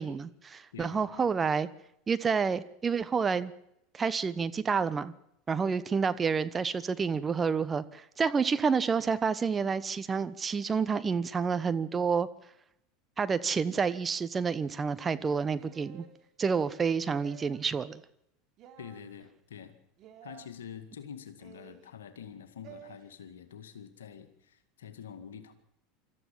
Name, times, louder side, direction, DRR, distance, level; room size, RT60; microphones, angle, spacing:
voice 1, 0.0-1.7 2.1-3.5 3.9-5.1 5.5-12.3 13.2-16.0 16.4-18.0, right 5 dB, 25° right, 14 dB, 1.1 m, -29 dB
voice 2, 0.7-1.3 18.8-19.7 20.2-25.5, left 8 dB, 75° left, 9 dB, 2.0 m, -46 dB
sound 1, 15.6-16.2 17.1-17.7 18.6-19.0 20.0-20.5 21.4-21.9 22.6-23.0, right 10 dB, 45° right, 3.2 m, -52 dB
25.0 x 14.0 x 7.5 m, 0.78 s
hypercardioid pair, 80°, 0 cm